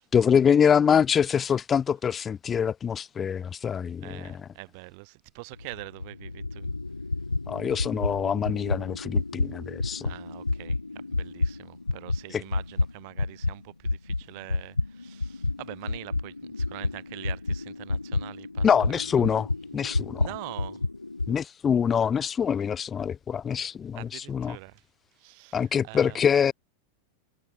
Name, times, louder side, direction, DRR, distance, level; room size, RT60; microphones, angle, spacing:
voice 1, 0.1-4.5 7.5-10.1 12.3-12.4 18.6-19.5 19.7-20.3 21.3-24.6 25.5-26.5, left 7 dB, 20° left, 0.3 m, -25 dB
voice 2, 4.0-6.7 9.8-19.0 20.2-20.8 23.9-24.8 25.2-26.2, right 32 dB, 45° right, 3.7 m, -44 dB
sound 1, 5.5-13.6 13.8-21.3, left 3 dB, 80° left, 1.4 m, -30 dB
figure-of-eight pair, 90°, 0 cm